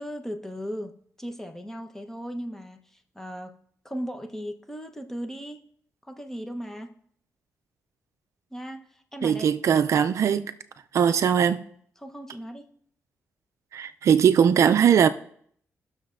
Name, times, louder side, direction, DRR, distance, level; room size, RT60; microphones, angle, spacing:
voice 1, 0.0-2.8 3.1-3.6 3.8-5.6 6.1-6.9 8.5-9.5 12.0-12.6, equal, 5° left, 0.9 m, -37 dB
voice 2, 9.2-10.5 10.9-11.6 13.7-15.1, right 8 dB, 65° right, 0.4 m, -20 dB
16.0 x 6.5 x 2.5 m
cardioid pair, 80°, 5 cm